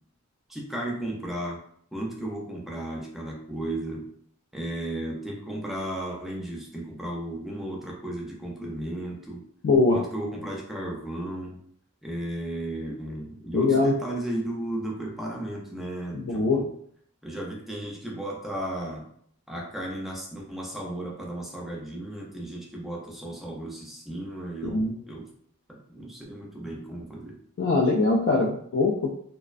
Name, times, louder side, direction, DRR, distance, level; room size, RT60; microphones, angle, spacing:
voice 1, 0.5-1.6 1.9-4.0 4.5-9.4 9.9-11.6 12.0-16.7 17.2-19.0 19.5-25.3 25.7-27.4, right 1 dB, ahead, -2 dB, 0.5 m, -34 dB
voice 2, 9.6-10.0 13.5-13.9 16.1-16.6 24.6-24.9 27.6-29.1, left 3 dB, 55° left, -2 dB, 0.3 m, -22 dB
2.4 x 2.1 x 2.4 m, 0.64 s
head